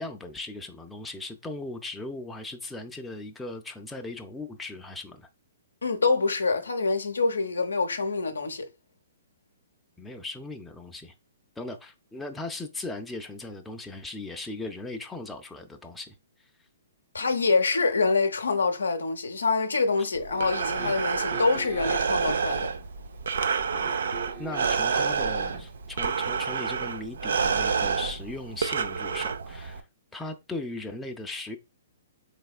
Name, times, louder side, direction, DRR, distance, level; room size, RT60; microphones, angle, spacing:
voice 1, 0.0-5.3 10.0-11.1 11.6-16.2 23.7-23.9 24.4-29.8 30.1-31.6, left 2 dB, 10° left, 0.4 m, -38 dB
voice 2, 5.8-8.7 17.1-22.7, left 4 dB, 85° left, 0.6 m, -25 dB
Breathing, 20.1-29.8, right 5 dB, 70° right, 0.4 m, -28 dB
sound 1, 20.3-22.6 23.8-25.0 25.5-25.6, right 3 dB, 45° right, 1.1 m, -41 dB
4.0 x 3.3 x 2.3 m
hypercardioid pair, 125°, 0 cm